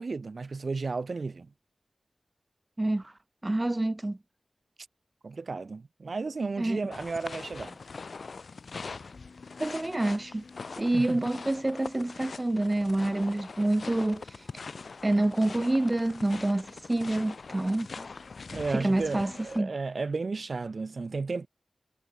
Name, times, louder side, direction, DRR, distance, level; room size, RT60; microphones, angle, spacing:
voice 1, 0.0-1.5 5.2-7.7 10.9-11.3 18.5-21.5, right 4 dB, 65° right, 1.3 m, -33 dB
voice 2, 2.8-3.1 3.4-4.2 6.6-6.8 9.6-10.4 10.8-14.5 15.0-18.1 18.7-19.7, right 2 dB, 25° right, 0.5 m, -27 dB
sound 1, 6.9-19.6, left 4 dB, 75° left, 2.0 m, -42 dB
wide cardioid pair, 85°, 0 cm